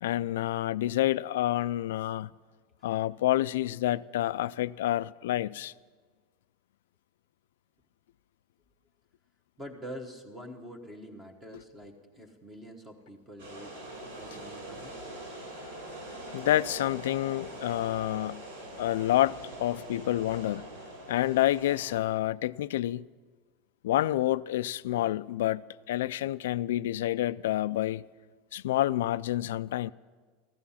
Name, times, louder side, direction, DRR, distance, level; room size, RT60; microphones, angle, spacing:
voice 1, 0.0-2.3 2.8-5.7 16.3-18.4 18.8-20.7 21.1-23.0 23.8-28.0 28.5-29.9, left 14 dB, 90° left, 0.3 m, -28 dB
voice 2, 9.6-13.8 14.1-14.9, equal, 10° right, 1.3 m, -45 dB
sound 1, 13.4-22.0, right 1 dB, 85° right, 5.1 m, -43 dB
15.0 x 13.0 x 5.7 m
supercardioid pair, 155°, 0 cm